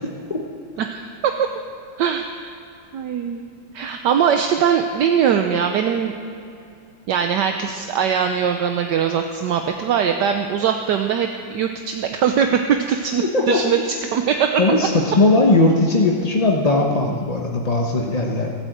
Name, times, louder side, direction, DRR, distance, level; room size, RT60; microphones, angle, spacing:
voice 1, 0.8-1.5 2.0-2.6 2.9-3.4 3.7-6.2 7.1-14.5, right 7 dB, 70° right, 5 dB, 1.3 m, -21 dB
voice 2, 14.6-18.5, left 2 dB, 30° left, -1 dB, 0.7 m, -18 dB
17.0 x 8.8 x 7.9 m, 2.5 s
omnidirectional pair, 2.1 m